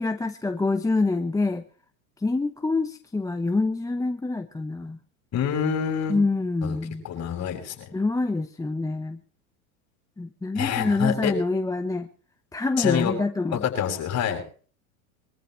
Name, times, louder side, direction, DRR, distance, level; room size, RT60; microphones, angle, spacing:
voice 1, 0.0-1.6 2.2-5.0 6.1-7.0 7.9-9.2 10.2-12.1 12.5-13.6, left 3 dB, 10° left, 7 dB, 1.0 m, -26 dB
voice 2, 5.3-6.2 6.6-6.8 7.0-7.8 10.5-11.3 12.8-13.1 13.5-14.4, left 8 dB, 40° left, 4 dB, 7.2 m, -26 dB
24.0 x 14.5 x 3.2 m, 0.42 s
hypercardioid pair, 105°, 42 cm